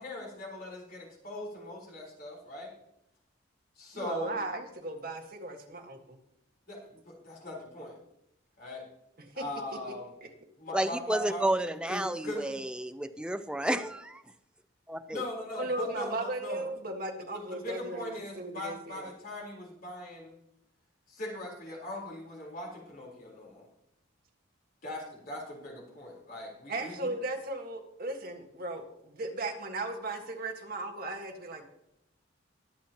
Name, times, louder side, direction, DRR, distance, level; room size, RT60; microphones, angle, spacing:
voice 1, 0.0-2.7 3.8-4.4 6.7-8.0 8.6-8.9 9.3-10.1 10.6-11.5 11.9-12.4 15.1-16.7 17.6-20.4 21.1-23.6 24.8-27.1, left 1 dB, 45° left, -1 dB, 4.1 m, -40 dB
voice 2, 3.9-6.2 9.2-9.4 15.5-19.1 26.7-31.7, right 2 dB, 50° right, 3 dB, 1.6 m, -36 dB
voice 3, 10.7-14.2 14.9-15.2, right 1 dB, 5° right, 9 dB, 0.5 m, -31 dB
22.0 x 7.4 x 3.0 m, 0.80 s
head